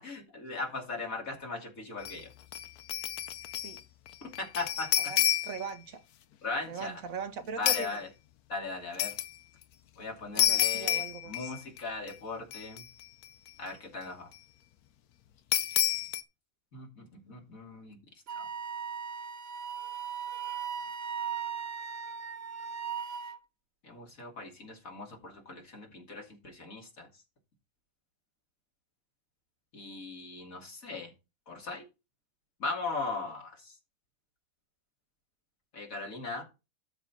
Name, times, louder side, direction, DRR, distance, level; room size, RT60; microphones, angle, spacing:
voice 1, 0.0-2.3 4.2-5.1 6.4-7.0 7.6-8.1 8.5-9.1 10.0-12.8 13.6-14.3 16.7-18.0 18.3-18.5 23.8-27.1 29.7-31.1 31.5-31.8 32.6-33.8 35.7-36.4, left 3 dB, 65° left, 3.1 m, -39 dB
sound 1, 2.0-2.2 2.5-3.8 4.1-5.7 7.7-7.9 9.0-9.3 10.4-11.8 12.1-12.2 12.5-13.3 15.5-16.2, left 13 dB, 90° left, 1.2 m, -29 dB
voice 2, 5.4-6.0 6.7-8.0 10.3-11.5, right 5 dB, 65° right, 1.4 m, -40 dB
Wind instrument woodwind instrument, 18.3-23.4, right 7 dB, 50° right, 0.9 m, -38 dB
12.5 x 4.4 x 5.7 m
omnidirectional pair, 1.5 m